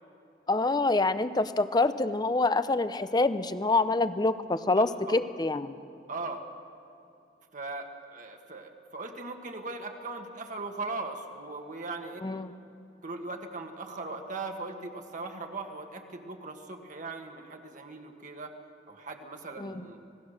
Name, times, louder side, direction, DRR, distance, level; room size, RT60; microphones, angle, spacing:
voice 1, 0.5-5.8 12.2-12.5 19.6-19.9, left 3 dB, 25° left, 13 dB, 0.7 m, -26 dB
voice 2, 6.1-6.4 7.5-12.2 13.0-18.5 18.9-20.0, right 3 dB, 45° right, 4 dB, 1.6 m, -39 dB
26.0 x 18.0 x 6.6 m, 2.7 s
head